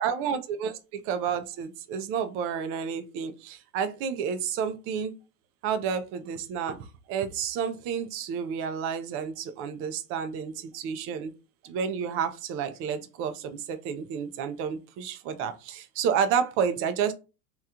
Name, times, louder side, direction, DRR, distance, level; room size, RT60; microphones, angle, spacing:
voice 1, 0.0-5.1 5.6-11.3 11.6-17.1, right 7 dB, 30° right, 0.4 m, -30 dB
2.9 x 2.3 x 3.5 m
hypercardioid pair, 120°, 45 cm